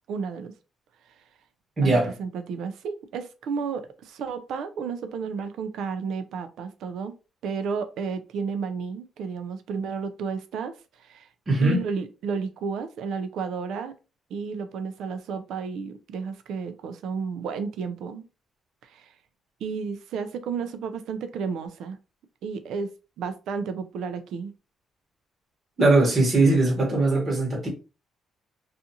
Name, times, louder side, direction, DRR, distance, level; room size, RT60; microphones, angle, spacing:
voice 1, 0.1-0.5 1.8-7.2 7.4-11.3 11.6-13.9 14.3-18.3 18.8-19.1 19.6-22.0 22.4-24.5, right 5 dB, 80° right, 0.4 m, -32 dB
voice 2, 1.8-2.1 11.5-11.8 25.8-27.7, right 2 dB, 35° right, 1.1 m, -20 dB
2.5 x 2.4 x 2.7 m
cardioid pair, 90°, 0 cm